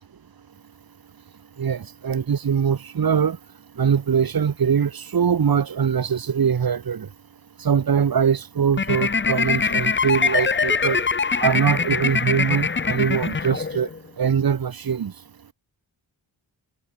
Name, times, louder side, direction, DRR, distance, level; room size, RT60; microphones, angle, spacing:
voice 1, 1.6-3.4 3.8-7.1 7.6-11.0 11.4-13.9 14.2-15.1, right 7 dB, 45° right, 1.1 m, -22 dB
sound 1, 8.7-14.0, left 5 dB, 25° left, 0.7 m, -23 dB
wide cardioid pair, 90°, 48 cm